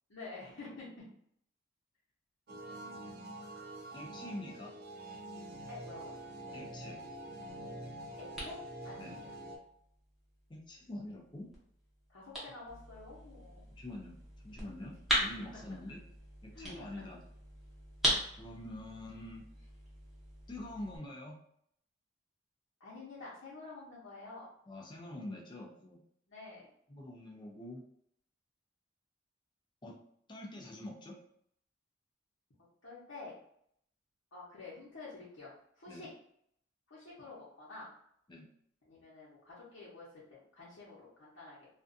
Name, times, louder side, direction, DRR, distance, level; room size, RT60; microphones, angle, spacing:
voice 1, 0.1-1.1 5.7-6.1 8.2-8.6 8.8-9.3 12.1-13.6 15.4-15.6 16.5-17.1 22.8-24.5 26.3-26.7 32.8-33.4 34.3-35.5 35.8-36.1 36.9-37.9 38.8-41.7, left 3 dB, 85° left, -10 dB, 0.9 m, -49 dB
sound 1, 2.5-9.6, right 1 dB, 50° right, 0.4 m, -46 dB
voice 2, 3.9-4.7 6.5-7.0 9.0-9.1 10.5-11.5 13.7-14.2 14.4-16.0 16.4-17.2 18.4-19.4 20.5-21.4 24.7-26.0 26.9-27.8 29.8-30.0 30.3-31.2 35.9-36.1 38.3-38.5, left 1 dB, 25° left, -1 dB, 0.5 m, -45 dB
sound 2, 7.5-21.0, equal, ahead, 0.8 m, -40 dB
2.5 x 2.3 x 2.5 m, 0.69 s
head